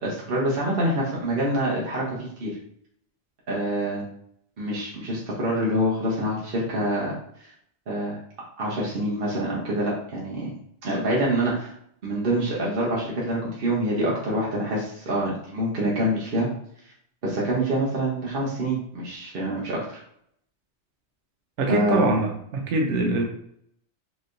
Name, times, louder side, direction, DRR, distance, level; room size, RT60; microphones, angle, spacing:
voice 1, 0.0-2.5 3.5-4.0 4.6-7.1 7.4-7.5 7.9-8.2 8.6-10.5 10.8-11.7 12.0-16.5 17.2-20.0 21.7-22.1, right 1 dB, 55° right, -4 dB, 1.0 m, -26 dB
voice 2, 21.6-23.2, right 2 dB, 85° right, 2 dB, 0.9 m, -23 dB
3.9 x 3.1 x 2.5 m, 0.69 s
omnidirectional pair, 1.2 m